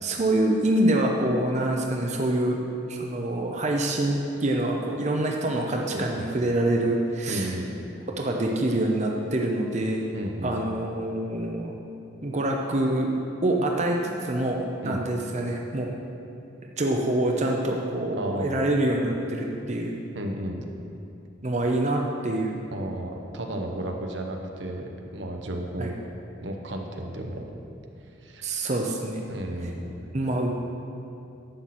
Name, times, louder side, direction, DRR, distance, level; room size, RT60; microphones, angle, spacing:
voice 1, 0.0-2.6 2.9-7.5 8.1-10.1 10.4-11.8 12.2-13.1 13.4-15.9 16.8-20.0 21.4-22.6 25.8-25.9 28.4-29.2 30.1-30.5, right 1 dB, 40° right, 1 dB, 0.7 m, -26 dB
voice 2, 5.9-6.3 7.3-7.7 10.1-10.6 14.8-15.0 18.2-18.6 20.1-20.6 22.7-25.9 26.4-27.4 28.2-28.5 29.3-29.8, right 1 dB, 75° right, 2 dB, 1.0 m, -33 dB
11.5 x 7.9 x 4.3 m, 2.7 s
head